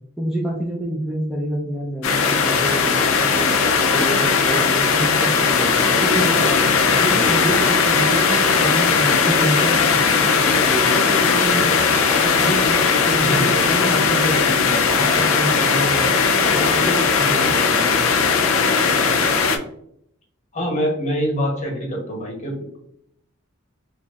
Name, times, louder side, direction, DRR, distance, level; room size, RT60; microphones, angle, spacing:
voice 1, 0.2-3.5 3.9-6.5 6.9-11.8 12.2-16.1 16.5-18.0, right 1 dB, ahead, -2 dB, 0.5 m, -27 dB
sound 1, 2.0-19.6, left 5 dB, 75° left, 0.4 m, -18 dB
voice 2, 13.2-13.6 20.5-22.8, equal, 35° left, 0 dB, 0.9 m, -25 dB
4.0 x 2.9 x 2.3 m, 0.72 s
head